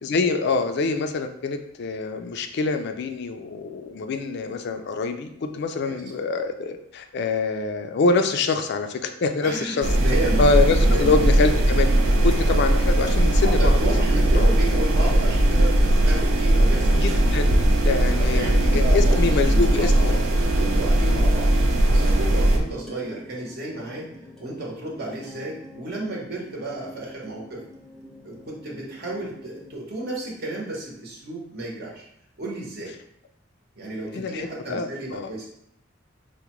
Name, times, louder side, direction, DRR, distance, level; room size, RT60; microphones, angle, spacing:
voice 1, 0.0-9.9 10.4-11.9 12.2-13.8 14.3-14.5 17.0-20.2 21.0-21.3 34.1-35.3, left 3 dB, 60° left, 7 dB, 0.4 m, -25 dB
voice 2, 9.4-10.4 10.8-11.1 13.4-17.6 18.2-20.1 20.5-21.5 21.8-24.1 24.4-27.6 28.2-32.0 32.4-32.9 33.8-35.5, right 2 dB, 55° right, -3 dB, 0.8 m, -32 dB
sound 1, 9.8-22.6, right 1 dB, 80° right, 0.5 m, -19 dB
sound 2, 11.2-29.8, equal, ahead, 0.6 m, -44 dB
4.8 x 2.1 x 2.9 m, 0.74 s
head